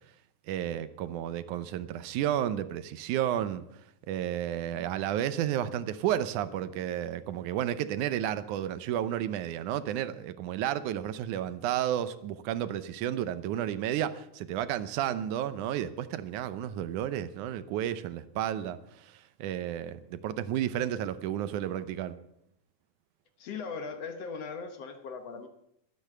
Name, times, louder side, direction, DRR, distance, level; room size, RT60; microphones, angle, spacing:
voice 1, 0.5-3.6 4.1-18.8 19.4-22.1, right 11 dB, 80° right, 13 dB, 2.2 m, -32 dB
voice 2, 23.4-25.5, left 5 dB, 60° left, 7 dB, 2.0 m, -39 dB
13.5 x 12.5 x 6.7 m, 0.76 s
omnidirectional pair, 3.6 m